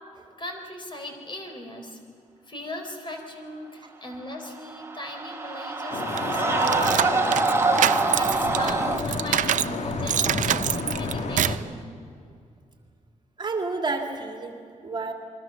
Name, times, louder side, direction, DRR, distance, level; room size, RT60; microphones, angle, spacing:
voice 1, 0.4-2.0 2.5-11.8, left 1 dB, 40° left, 4 dB, 4.0 m, -38 dB
sound 1, 4.6-9.0, right 3 dB, 20° right, 1.3 m, -25 dB
Vehicle horn car horn honking / Traffic noise roadway noise, 5.9-11.6, left 3 dB, 60° left, 1.7 m, -30 dB
sound 2, 6.2-9.7 10.1-11.7, right 11 dB, 80° right, 0.5 m, -26 dB
voice 2, 13.4-15.1, right 3 dB, 35° right, 4 dB, 2.4 m, -30 dB
28.5 x 22.0 x 7.0 m, 2.4 s
wide cardioid pair, 120°, 13 cm